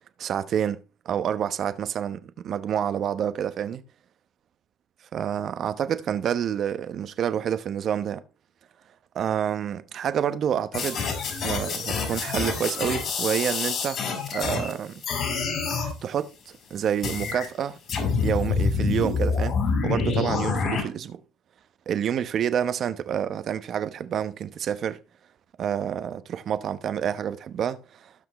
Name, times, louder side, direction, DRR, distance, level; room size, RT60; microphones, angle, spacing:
voice 1, 0.2-3.8 5.1-8.2 9.1-11.0 11.4-15.0 15.8-17.8 18.2-21.2 21.9-25.0 25.6-28.1, right 9 dB, 55° right, 1.0 m, -28 dB
sound 1, 10.7-14.7 15.0-15.9 17.0-17.5 17.9-20.8, left 5 dB, 55° left, 5.1 m, -27 dB
17.0 x 5.9 x 3.2 m
supercardioid pair, 80°, 0 cm